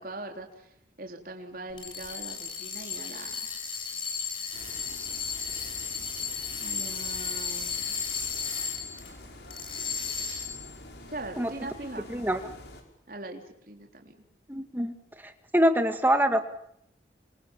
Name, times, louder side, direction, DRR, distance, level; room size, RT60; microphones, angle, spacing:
voice 1, 0.0-3.5 6.6-8.0 11.1-12.1 13.1-14.2, right 2 dB, 50° right, 3 dB, 3.7 m, -41 dB
sound 1, 1.7-9.1 9.5-10.7, left 6 dB, 30° left, 6.3 m, -34 dB
sound 2, 4.5-12.8, left 1 dB, 70° left, 5.6 m, -47 dB
voice 2, 14.5-14.9 15.2-16.4, equal, 10° right, 7 dB, 2.1 m, -24 dB
28.0 x 26.0 x 7.4 m, 0.73 s
head